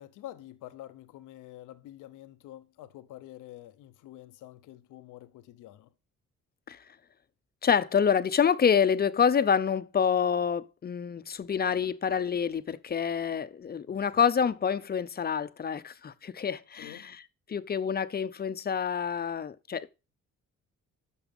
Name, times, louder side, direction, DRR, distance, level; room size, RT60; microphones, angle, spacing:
voice 1, 0.0-5.9 13.9-14.0 16.7-17.1, left 14 dB, 90° left, 0.8 m, -47 dB
voice 2, 7.6-17.2 17.5-19.9, left 7 dB, 30° left, 0.7 m, -27 dB
9.9 x 6.3 x 5.3 m
cardioid pair, 90°, 30 cm